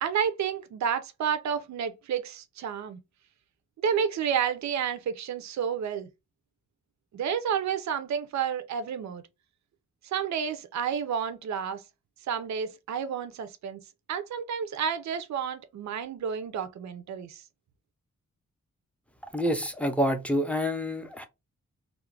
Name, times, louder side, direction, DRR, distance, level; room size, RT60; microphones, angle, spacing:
voice 1, 0.0-3.0 3.8-6.1 7.1-9.2 10.0-11.8 12.3-13.8 14.1-17.4, right 7 dB, 70° right, 0.4 m, -30 dB
voice 2, 19.3-21.3, equal, 5° left, 0.4 m, -27 dB
2.4 x 2.0 x 3.1 m
wide cardioid pair, 130°, 29 cm